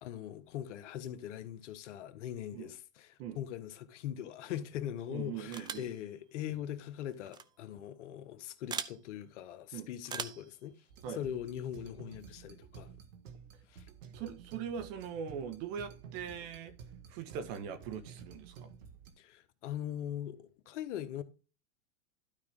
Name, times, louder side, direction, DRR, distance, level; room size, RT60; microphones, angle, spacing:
voice 1, 0.0-10.8 11.1-12.9 13.7-13.9 19.2-21.2, left 11 dB, 70° left, 1.3 m, -41 dB
voice 2, 5.1-5.9 9.7-9.9 11.0-11.2 14.1-16.7 17.1-18.7, right 7 dB, 55° right, 1.7 m, -41 dB
sound 1, 5.5-5.9 7.2-7.4 8.7-9.0 10.0-10.5, right 7 dB, 10° right, 0.3 m, -39 dB
sound 2, 10.9-19.1, right 7 dB, 80° right, 1.9 m, -52 dB
12.0 x 5.0 x 3.7 m
hypercardioid pair, 115°, 37 cm